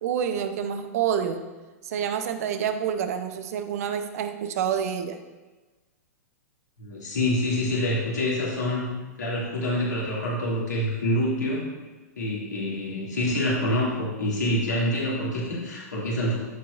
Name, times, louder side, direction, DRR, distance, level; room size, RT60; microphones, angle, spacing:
voice 1, 0.0-1.4 1.8-5.2, right 8 dB, 60° right, 8 dB, 0.8 m, -28 dB
voice 2, 6.8-8.9 9.2-11.6 12.2-16.4, left 1 dB, 85° left, -5 dB, 2.5 m, -26 dB
14.0 x 4.7 x 2.6 m, 1.2 s
hypercardioid pair, 110°, 9 cm